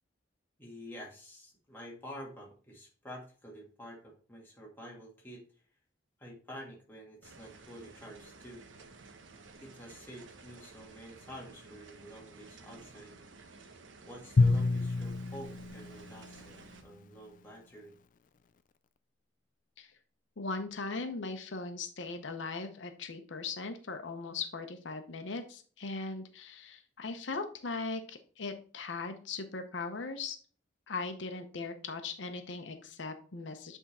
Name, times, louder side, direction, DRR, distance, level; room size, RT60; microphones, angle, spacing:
voice 1, 0.6-5.5 6.2-8.6 9.6-13.2 14.0-17.9, equal, 10° left, -2 dB, 1.8 m, -49 dB
sound 1, 7.2-16.8, right 3 dB, 90° right, 0.9 m, -54 dB
Drum, 14.4-16.8, left 3 dB, 45° left, 0.4 m, -29 dB
voice 2, 20.4-30.4 30.9-33.8, left 3 dB, 80° left, 7 dB, 0.8 m, -39 dB
8.1 x 3.6 x 4.1 m, 0.42 s
head